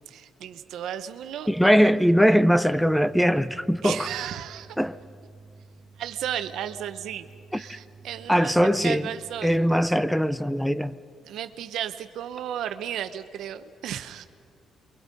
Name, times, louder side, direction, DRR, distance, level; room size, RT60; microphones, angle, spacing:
voice 1, 0.1-1.5 3.8-4.8 6.0-9.8 11.2-14.3, right 10 dB, 80° right, 1.0 m, -34 dB
voice 2, 1.5-4.1 4.8-5.0 7.7-7.8 8.3-9.0 9.4-10.9, equal, 5° left, 0.6 m, -21 dB
sound 1, 2.7-9.9, right 4 dB, 35° right, 3.0 m, -50 dB
28.5 x 23.5 x 5.3 m
cardioid pair, 90°, 0 cm